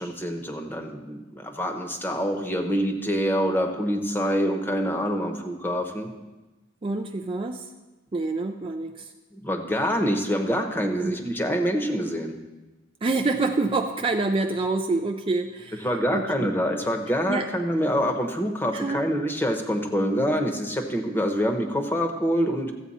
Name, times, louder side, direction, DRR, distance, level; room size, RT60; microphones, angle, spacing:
voice 1, 0.0-6.1 9.3-12.3 15.8-22.7, equal, 10° left, 4 dB, 0.9 m, -26 dB
voice 2, 6.8-7.7 8.1-9.1 11.0-11.2 13.0-15.9 16.1-16.5 17.3-17.5 18.7-19.0, right 3 dB, 25° right, 4 dB, 0.4 m, -27 dB
13.5 x 8.2 x 4.2 m, 1.1 s
head